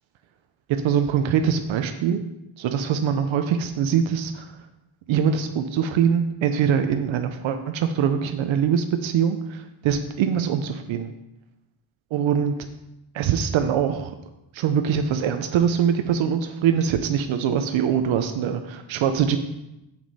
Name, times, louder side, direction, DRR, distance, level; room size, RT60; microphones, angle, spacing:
voice 1, 0.7-2.2 2.6-4.5 5.1-11.1 12.1-12.5 13.1-14.1 14.5-19.4, right 8 dB, 75° right, 7 dB, 0.7 m, -23 dB
7.8 x 6.1 x 4.1 m, 0.93 s
cardioid pair, 170°, 47 cm